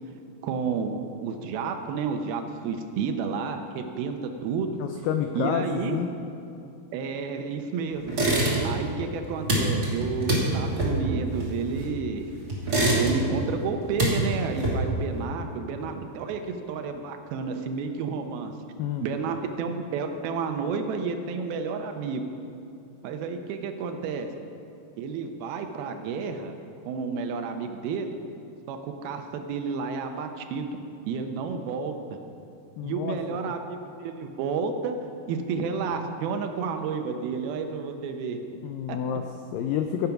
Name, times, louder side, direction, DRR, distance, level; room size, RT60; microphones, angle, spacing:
voice 1, 0.4-4.8 5.4-6.0 6.9-8.3 8.6-12.3 13.0-18.6 19.0-22.2 23.0-24.4 25.0-26.5 26.9-28.2 28.7-30.8 31.1-32.0 32.8-38.6 38.9-39.0, right 5 dB, 75° right, 6 dB, 2.6 m, -31 dB
voice 2, 4.8-6.1 18.8-19.1 32.8-33.5 38.6-40.1, left 9 dB, 85° left, 6 dB, 1.9 m, -29 dB
sound 1, 8.1-8.9 9.1-12.1 12.5-13.4 13.7-15.1, right 1 dB, 30° right, 2.6 m, -25 dB
15.5 x 8.5 x 5.8 m, 2.7 s
omnidirectional pair, 4.6 m